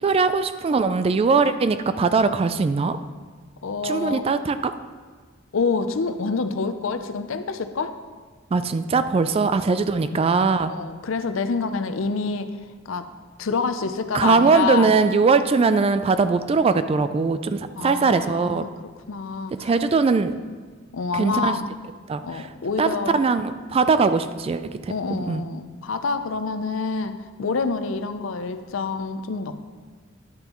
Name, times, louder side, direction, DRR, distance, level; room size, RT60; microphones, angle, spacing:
voice 1, 0.0-3.0 3.8-4.7 8.5-10.7 14.1-18.7 19.6-20.3 21.1-21.6 22.1-22.5 22.8-25.4, right 4 dB, 30° right, 11 dB, 0.3 m, -21 dB
voice 2, 3.6-4.3 5.5-7.9 10.7-12.5 12.9-13.1 13.4-14.9 17.8-18.7 19.1-19.7 20.9-21.7 22.2-23.2 24.9-29.7, left 4 dB, 75° left, 9 dB, 0.6 m, -27 dB
10.5 x 8.8 x 3.0 m, 1.5 s
head